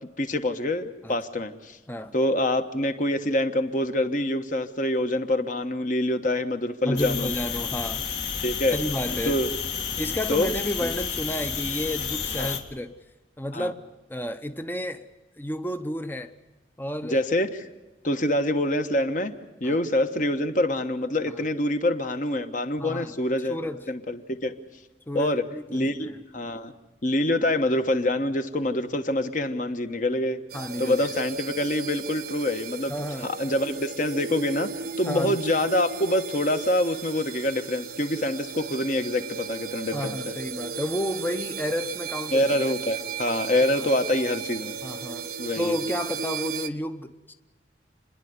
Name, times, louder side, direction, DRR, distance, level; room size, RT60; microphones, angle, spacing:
voice 1, 0.2-1.8 2.1-7.3 8.4-8.8 9.1-9.5 10.3-10.5 10.8-10.9 12.4-12.6 13.5-13.7 17.0-17.5 18.0-19.3 19.6-23.6 23.9-24.5 25.1-25.4 25.7-26.7 27.0-30.4 30.8-32.9 33.2-34.7 35.0-40.2 42.3-44.8 45.4-45.8, left 1 dB, 45° left, 7 dB, 1.3 m, -25 dB
voice 2, 6.8-8.1 8.7-9.4 10.0-12.9 13.4-13.8 14.1-15.1 15.4-16.3 16.8-17.2 19.6-19.8 22.8-23.9 25.1-26.2 30.5-31.1 32.9-33.3 35.1-35.4 39.9-42.5 43.8-43.9 44.8-45.3 45.6-47.3, left 1 dB, 10° left, 9 dB, 0.7 m, -31 dB
sound 1, 7.0-12.6, left 6 dB, 65° left, 2.4 m, -31 dB
sound 2, 30.5-46.7, right 6 dB, 50° right, 0.7 m, -36 dB
29.5 x 11.0 x 9.5 m, 1.1 s
head